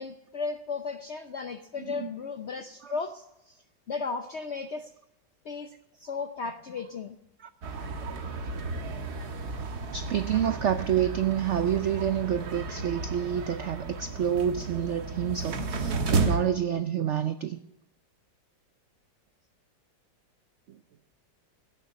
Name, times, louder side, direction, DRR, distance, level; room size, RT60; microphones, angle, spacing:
voice 1, 0.0-3.6 3.9-4.9 5.4-5.7 6.0-7.2, left 4 dB, 65° left, 7 dB, 0.6 m, -35 dB
voice 2, 1.8-2.1 2.8-2.9 9.9-17.6, right 9 dB, 85° right, 10 dB, 0.6 m, -28 dB
sound 1, 7.6-16.4, right 3 dB, 60° right, 1.7 m, -32 dB
16.0 x 6.8 x 9.5 m, 0.90 s
omnidirectional pair, 2.0 m